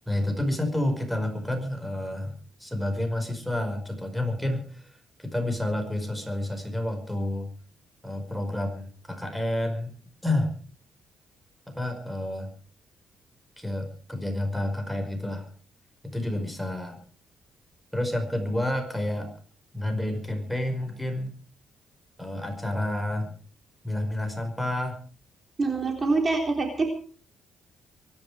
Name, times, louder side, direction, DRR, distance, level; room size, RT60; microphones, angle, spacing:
voice 1, 0.1-2.4 2.6-4.9 5.2-7.5 8.0-9.9 10.2-10.5 11.7-12.5 13.6-15.5 16.0-17.0 17.9-19.3 19.7-21.4 22.2-23.3 23.8-25.0, left 1 dB, ahead, 6 dB, 5.2 m, -29 dB
voice 2, 25.6-26.9, right 3 dB, 30° right, 3 dB, 3.7 m, -25 dB
24.0 x 11.5 x 4.9 m, 0.42 s
cardioid pair, 90°, 0 cm